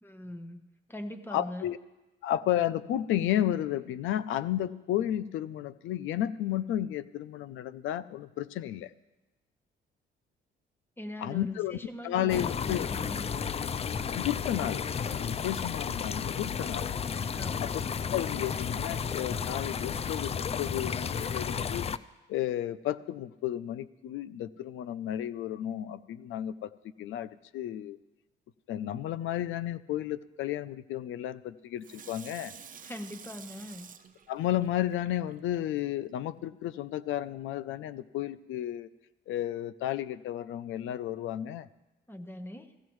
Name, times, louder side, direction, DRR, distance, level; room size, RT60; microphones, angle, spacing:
voice 1, 0.0-0.6 0.9-1.7 11.0-13.5 17.3-17.8 32.8-33.9 42.1-42.7, left 1 dB, 10° left, 7 dB, 1.2 m, -42 dB
voice 2, 1.3-1.8 2.2-8.9 11.2-11.8 12.0-12.9 14.1-16.9 17.6-17.7 18.1-21.9 22.3-26.7 27.0-28.0 28.7-32.5 34.3-38.9 39.3-41.7, left 12 dB, 85° left, 16 dB, 0.5 m, -32 dB
sound 1, 12.3-22.0, left 6 dB, 30° left, 0.4 m, -33 dB
Water tap faucet / Sink (filling or washing), 31.8-35.6 36.1-36.2, right 7 dB, 45° right, 0.8 m, -50 dB
16.5 x 15.5 x 3.2 m, 1.1 s
cardioid pair, 90°, 20 cm